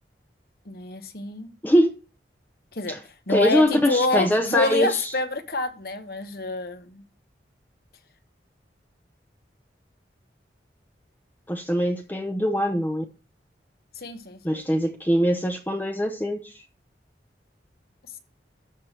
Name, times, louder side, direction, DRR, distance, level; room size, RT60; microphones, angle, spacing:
voice 1, 0.6-1.5 2.7-3.0 3.3-7.0 14.0-14.6, left 2 dB, 55° left, 9 dB, 1.1 m, -27 dB
voice 2, 3.3-5.1 11.5-13.0 14.4-16.5, equal, 10° left, 5 dB, 0.6 m, -22 dB
13.0 x 5.8 x 3.3 m, 0.34 s
head